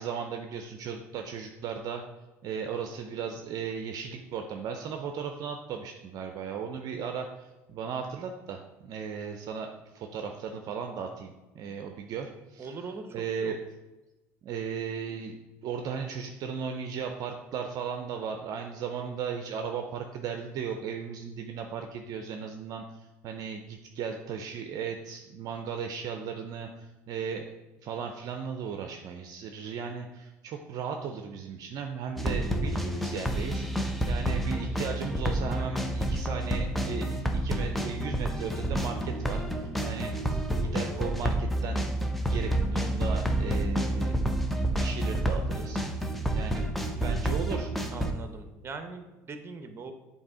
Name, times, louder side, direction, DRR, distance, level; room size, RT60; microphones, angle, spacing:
voice 1, 0.0-2.0 2.4-9.7 9.9-13.6 14.4-15.3 15.6-27.5 27.8-41.9 42.3-44.2 44.6-47.7, right 6 dB, 55° right, 4 dB, 0.5 m, -36 dB
voice 2, 12.6-13.2 13.4-13.6 47.9-49.9, right 4 dB, 30° right, 7 dB, 0.8 m, -41 dB
sound 1, 32.2-48.1, right 1 dB, ahead, 0.7 m, -29 dB
7.2 x 2.8 x 4.8 m, 1.1 s
hypercardioid pair, 80°, 8 cm